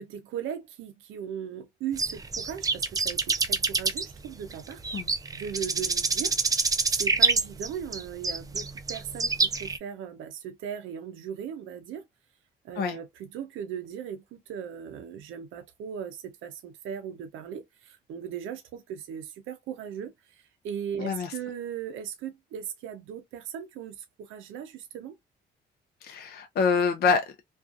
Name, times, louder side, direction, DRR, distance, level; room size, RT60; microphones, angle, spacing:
voice 1, 0.0-4.9 5.3-6.4 6.9-12.1 12.6-25.1, right 8 dB, 80° right, 0.5 m, -38 dB
sound 1, 2.0-9.8, right 4 dB, 20° right, 0.3 m, -27 dB
voice 2, 21.0-21.3 26.0-27.3, left 5 dB, 55° left, 0.5 m, -26 dB
2.5 x 2.3 x 2.3 m
cardioid pair, 90°, 20 cm